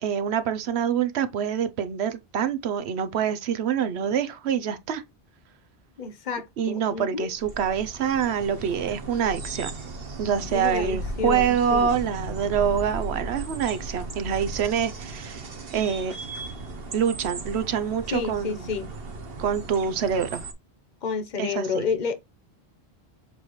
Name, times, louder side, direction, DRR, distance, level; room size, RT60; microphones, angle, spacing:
voice 1, 0.0-5.0 6.6-9.7 10.2-15.4 15.7-16.1 16.9-18.6 19.4-20.4 21.4-21.8, right 8 dB, 85° right, 1.0 m, -26 dB
voice 2, 6.0-7.3 10.5-12.0 18.1-18.9 21.0-22.1, left 5 dB, 50° left, 1.1 m, -30 dB
sound 1, 7.3-20.5, right 2 dB, 65° right, 1.3 m, -36 dB
7.2 x 4.3 x 3.2 m
omnidirectional pair, 1.1 m